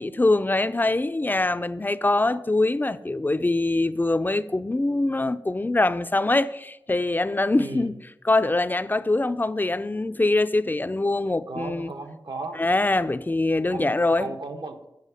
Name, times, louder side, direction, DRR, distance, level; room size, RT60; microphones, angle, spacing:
voice 1, 0.0-7.9 8.2-11.9 12.5-14.3, left 2 dB, 20° left, 0.4 m, -23 dB
voice 2, 7.4-7.9 11.5-12.6 13.7-14.9, right 3 dB, 60° right, 1.0 m, -36 dB
8.1 x 4.9 x 5.5 m
cardioid pair, 45°, 8 cm